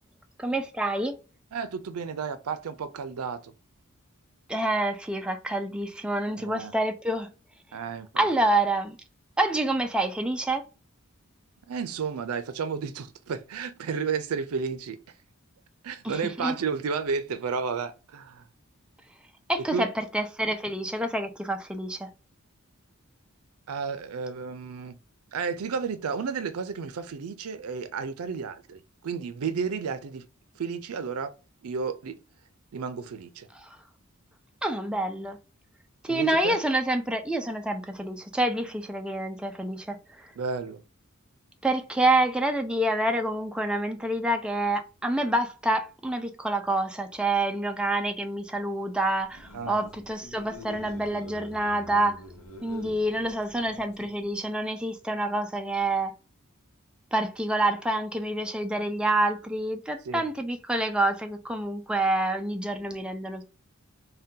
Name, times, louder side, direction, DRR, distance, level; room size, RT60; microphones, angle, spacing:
voice 1, 0.4-1.2 4.5-7.3 8.2-9.0 9.4-10.7 16.0-16.1 16.4-16.5 19.5-19.9 20.1-22.1 34.6-35.4 36.0-40.3 41.6-52.2 52.6-56.1 57.1-63.4, right 1 dB, 5° right, 0.3 m, -27 dB
voice 2, 1.5-3.5 6.3-6.7 7.7-8.3 11.7-15.0 15.8-18.4 19.7-19.9 23.7-25.0 25.3-30.3 30.6-31.3 31.6-32.2 32.7-33.5 36.1-36.6 40.4-40.8 49.5-49.9 60.0-60.3, right 5 dB, 90° right, 0.5 m, -32 dB
sound 1, 49.2-54.3, left 1 dB, 90° left, 0.8 m, -46 dB
2.7 x 2.2 x 3.5 m
head